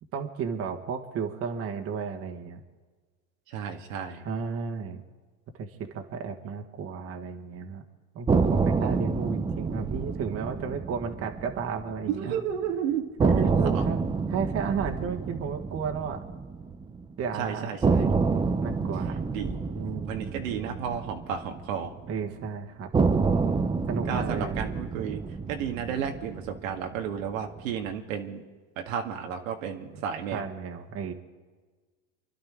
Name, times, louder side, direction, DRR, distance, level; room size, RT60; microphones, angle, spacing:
voice 1, 0.1-2.6 4.2-5.0 5.6-7.8 8.1-12.4 13.2-14.0 14.3-16.2 17.2-17.7 18.6-19.2 19.7-20.5 22.1-22.9 23.9-24.9 30.3-31.1, right 6 dB, 35° right, 3 dB, 1.6 m, -33 dB
voice 2, 3.5-4.3 8.8-9.0 12.1-13.0 13.4-13.8 17.4-18.1 19.3-19.6 20.1-22.0 24.1-25.2 25.5-28.4 28.9-30.5, right 8 dB, 80° right, 3 dB, 1.8 m, -32 dB
sound 1, 8.3-12.4 12.6-12.7 13.2-17.3 17.8-22.2 22.9-27.3, right 4 dB, 10° right, 0.6 m, -28 dB
29.5 x 11.5 x 3.7 m, 1.4 s
supercardioid pair, 125°, 40 cm